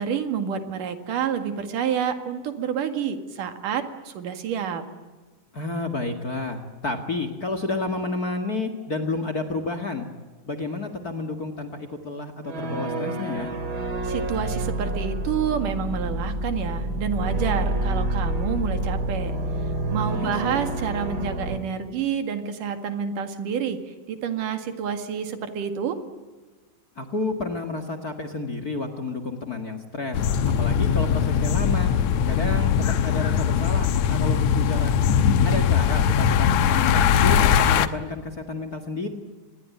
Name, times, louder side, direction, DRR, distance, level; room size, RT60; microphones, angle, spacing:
voice 1, 0.0-4.8 14.0-19.4 19.9-23.8 24.1-26.0, right 7 dB, 75° right, 8 dB, 3.5 m, -28 dB
voice 2, 5.5-10.1 10.5-13.5 20.1-20.7 27.0-31.9 32.3-34.9 35.4-39.1, left 3 dB, 35° left, 9 dB, 1.8 m, -30 dB
sound 1, 12.4-21.6, right 1 dB, 35° right, 2.5 m, -28 dB
sound 2, 30.1-37.9, left 8 dB, 65° left, 1.9 m, -20 dB
25.0 x 20.5 x 9.5 m, 1.3 s
omnidirectional pair, 3.8 m